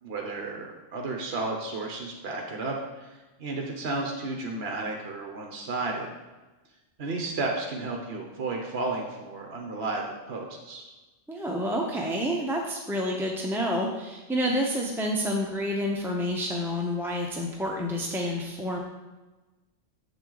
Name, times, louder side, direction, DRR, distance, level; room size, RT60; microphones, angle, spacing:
voice 1, 0.0-6.1 7.0-10.9, right 3 dB, 55° right, 0 dB, 1.1 m, -33 dB
voice 2, 11.3-18.8, equal, ahead, -1 dB, 0.6 m, -29 dB
7.7 x 7.5 x 3.9 m, 1.2 s
omnidirectional pair, 1.3 m